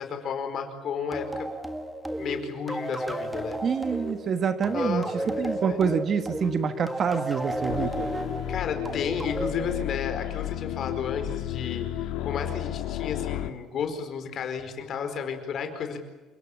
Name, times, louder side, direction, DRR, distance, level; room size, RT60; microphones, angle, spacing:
voice 1, 0.0-1.5 2.2-3.6 4.7-5.8 8.5-16.0, left 6 dB, 40° left, 7 dB, 4.6 m, -33 dB
sound 1, 1.1-10.4, right 1 dB, 5° right, 1.7 m, -33 dB
voice 2, 3.6-5.0 5.4-8.1, right 6 dB, 30° right, 10 dB, 1.3 m, -27 dB
sound 2, 7.7-13.5, left 12 dB, 75° left, 1.8 m, -32 dB
28.5 x 18.0 x 8.7 m, 1.2 s
cardioid pair, 175°, 0 cm